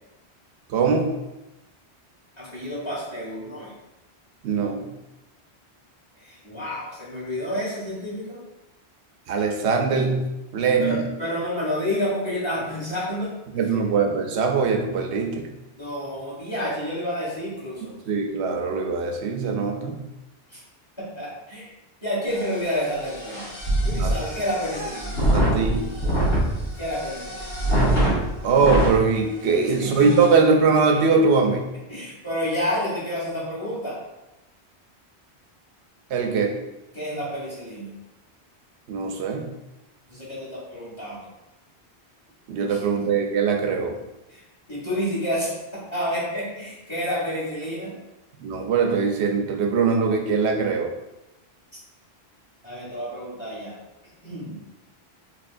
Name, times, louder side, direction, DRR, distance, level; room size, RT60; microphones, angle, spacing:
voice 1, 0.7-1.1 4.4-4.9 9.3-10.2 10.5-11.0 13.5-15.5 18.1-20.0 24.0-24.1 25.3-25.9 28.4-31.6 36.1-36.5 38.9-39.5 42.5-44.0 48.4-50.9, right 5 dB, 80° right, 3 dB, 0.9 m, -21 dB
voice 2, 2.4-3.7 6.2-8.4 10.8-13.3 13.7-13.8 15.8-17.9 20.5-20.6 21.0-21.7 22.0-23.5 23.8-25.1 26.8-27.4 29.8-30.1 31.9-34.0 36.9-37.9 40.1-41.3 42.7-43.1 44.3-44.4 44.7-47.9 52.6-53.7 54.2-54.6, equal, 25° left, -9 dB, 1.5 m, -29 dB
sound 1, 22.3-29.0 29.5-29.6 29.9-30.3, right 1 dB, 65° left, 1.8 m, -24 dB
3.7 x 3.3 x 2.5 m, 0.97 s
omnidirectional pair, 1.1 m